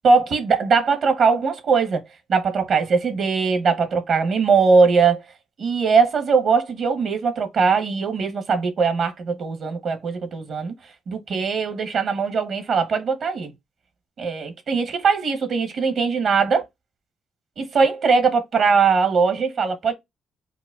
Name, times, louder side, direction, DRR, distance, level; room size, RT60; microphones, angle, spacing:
voice 1, 0.0-2.0 2.3-5.2 5.6-10.7 11.1-13.5 14.2-16.7 17.6-19.9, right 5 dB, 60° right, 0.8 m, -20 dB
4.6 x 2.2 x 2.3 m
cardioid pair, 90°, 0 cm